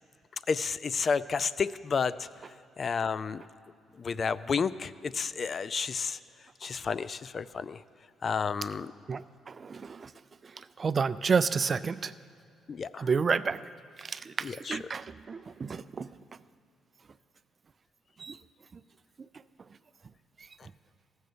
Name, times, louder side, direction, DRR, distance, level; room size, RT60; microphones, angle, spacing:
voice 1, 0.5-2.3 2.8-3.4 4.0-6.2 6.6-7.8 8.2-8.9 12.7-13.1 14.4-14.8, left 5 dB, 45° left, 17 dB, 0.3 m, -31 dB
voice 2, 9.1-10.1 10.6-12.1 13.0-13.6 14.0-16.1 18.2-18.4, right 5 dB, 40° right, 15 dB, 0.3 m, -30 dB
15.0 x 6.4 x 6.9 m, 2.3 s
cardioid pair, 90°, 0 cm